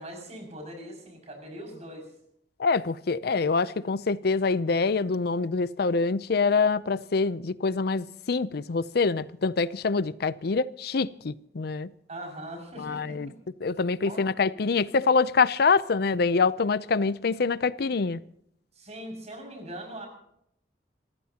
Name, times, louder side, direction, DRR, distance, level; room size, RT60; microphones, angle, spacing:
voice 1, 0.0-2.1 3.6-3.7 12.1-13.2 14.0-14.2 18.7-20.1, right 1 dB, 40° right, 3 dB, 6.3 m, -41 dB
voice 2, 2.6-11.9 12.8-13.3 13.6-18.2, left 4 dB, 65° left, 17 dB, 0.5 m, -25 dB
27.5 x 15.0 x 2.9 m, 0.72 s
head